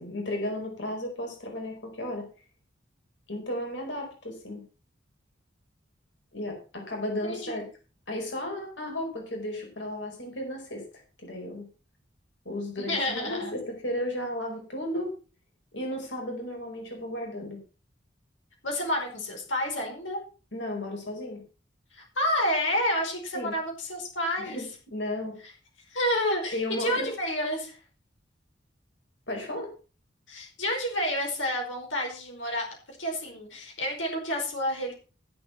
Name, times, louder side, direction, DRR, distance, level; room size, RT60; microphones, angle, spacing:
voice 1, 0.0-2.2 3.3-4.6 6.3-7.6 8.1-10.8 11.2-11.6 12.4-15.1 15.7-17.6 20.5-21.4 23.3-23.5 24.4-25.4 26.5-27.1 29.3-29.7, left 1 dB, 65° left, 1 dB, 4.8 m, -34 dB
voice 2, 7.2-7.6 12.8-13.6 18.6-20.2 21.9-24.6 25.9-27.8 30.3-34.9, left 1 dB, 90° left, 1 dB, 4.8 m, -29 dB
14.5 x 7.4 x 5.9 m, 0.36 s
head